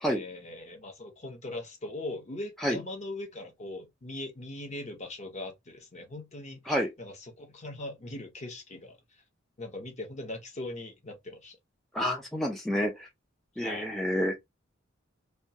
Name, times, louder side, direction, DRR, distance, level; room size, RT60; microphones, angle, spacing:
voice 1, 0.1-9.2 9.6-11.6 13.5-13.9, left 2 dB, 35° left, 0.7 m, -40 dB
voice 2, 11.9-13.1 13.6-14.4, equal, ahead, 0.4 m, -29 dB
2.2 x 2.2 x 2.7 m
head